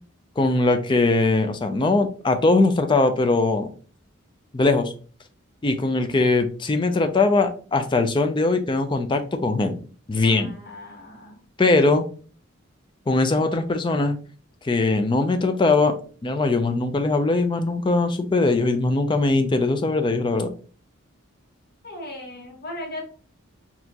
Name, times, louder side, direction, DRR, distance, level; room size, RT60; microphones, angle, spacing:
voice 1, 0.4-3.7 4.5-4.9 5.6-9.8 10.1-10.5 11.6-12.0 13.1-14.2 14.6-16.0 16.2-20.5, left 3 dB, 25° left, 7 dB, 0.4 m, -21 dB
voice 2, 10.2-11.4 21.8-23.0, left 1 dB, 50° left, -1 dB, 1.4 m, -37 dB
4.2 x 2.8 x 2.8 m, 0.40 s
head